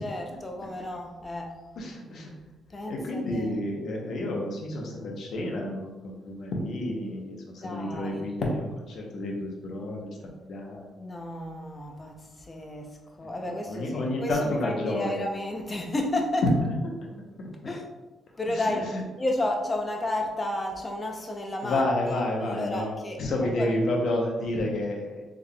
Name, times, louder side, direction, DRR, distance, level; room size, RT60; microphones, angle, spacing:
voice 1, 0.0-1.6 2.7-3.5 7.6-8.3 11.0-16.4 17.6-17.8 18.3-18.9 19.2-21.8 22.1-23.7, left 1 dB, 25° left, 2 dB, 0.6 m, -32 dB
voice 2, 1.8-2.3 2.9-10.1 10.4-10.9 13.5-15.2 16.4-16.5 18.9-19.0 21.6-25.2, left 1 dB, 65° left, 0 dB, 0.8 m, -30 dB
3.6 x 3.5 x 2.3 m, 1.1 s
cardioid pair, 90°, 0 cm